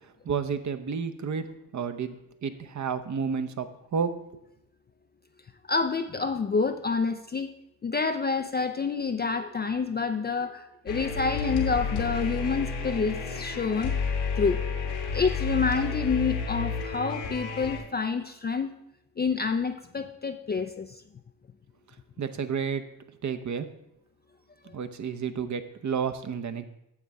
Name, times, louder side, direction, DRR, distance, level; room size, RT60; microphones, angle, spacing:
voice 1, 0.2-1.5 1.7-2.1 2.4-4.1 22.2-22.8 23.2-23.7 24.7-26.6, right 6 dB, 35° right, 9 dB, 0.8 m, -30 dB
voice 2, 5.6-7.5 7.8-13.9 14.4-14.6 15.1-18.7 19.2-21.0 24.7-24.8, left 5 dB, 20° left, 7 dB, 0.4 m, -28 dB
sound 1, 10.9-17.8, left 5 dB, 80° left, 1.7 m, -31 dB
9.5 x 7.2 x 3.5 m, 0.83 s
hypercardioid pair, 55°, 49 cm